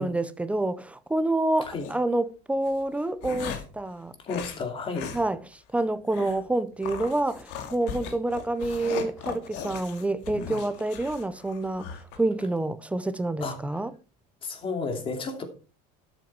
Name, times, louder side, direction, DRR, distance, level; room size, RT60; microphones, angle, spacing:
voice 1, 0.0-4.1 5.1-13.9, right 2 dB, 5° right, 0.5 m, -28 dB
sound 1, 1.6-1.9 2.7-3.8 4.3-4.6 4.9-5.2 5.5-5.6 6.1-6.4 6.8-12.2, left 7 dB, 65° left, 2.3 m, -38 dB
voice 2, 4.2-5.1 13.4-13.6 14.4-15.4, left 4 dB, 25° left, 2.6 m, -32 dB
12.5 x 8.0 x 4.6 m
cardioid pair, 165°, 20 cm